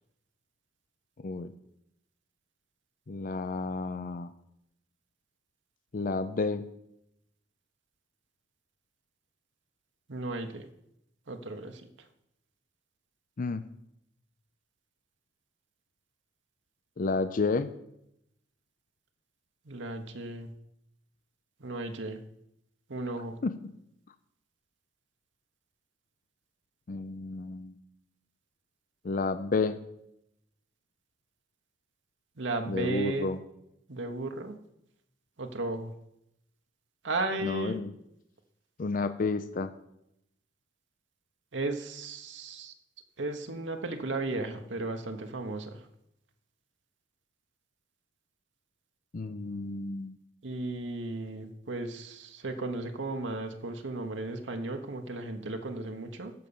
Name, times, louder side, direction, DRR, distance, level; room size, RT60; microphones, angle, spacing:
voice 1, 3.1-4.3 5.9-6.6 13.4-13.6 17.0-17.7 23.4-23.5 26.9-27.7 29.0-29.8 32.7-33.4 37.4-37.9 38.8-39.7 49.1-50.1, left 3 dB, 45° left, 11 dB, 0.5 m, -31 dB
voice 2, 10.1-10.7 11.3-11.9 19.7-20.5 21.6-22.2 22.9-23.4 32.4-33.3 33.9-34.6 35.4-35.9 37.0-37.8 41.5-42.7 43.2-45.9 50.4-56.3, right 2 dB, 75° right, 5 dB, 1.1 m, -35 dB
13.5 x 5.3 x 7.1 m, 0.81 s
head